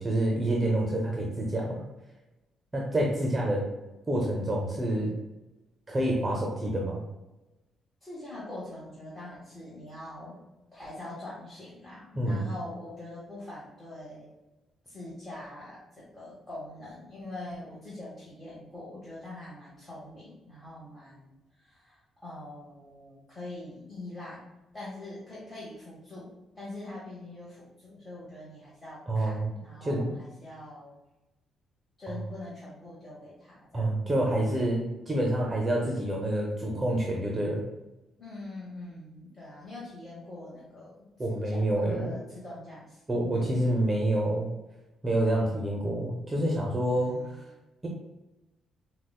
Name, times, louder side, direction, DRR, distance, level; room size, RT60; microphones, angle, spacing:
voice 1, 0.0-1.8 2.7-3.6 4.1-5.1 5.9-7.0 12.2-12.5 29.1-29.5 29.8-30.1 33.7-37.6 41.2-42.1 43.1-44.5 45.0-47.4, right 1 dB, 20° right, -1 dB, 0.6 m, -27 dB
voice 2, 8.0-10.4 10.7-14.3 14.8-24.5 24.7-30.9 32.0-34.7 38.2-44.1 46.8-47.4, left 1 dB, 15° left, -8 dB, 1.1 m, -43 dB
4.8 x 2.1 x 2.3 m, 1.0 s
cardioid pair, 90°, 0 cm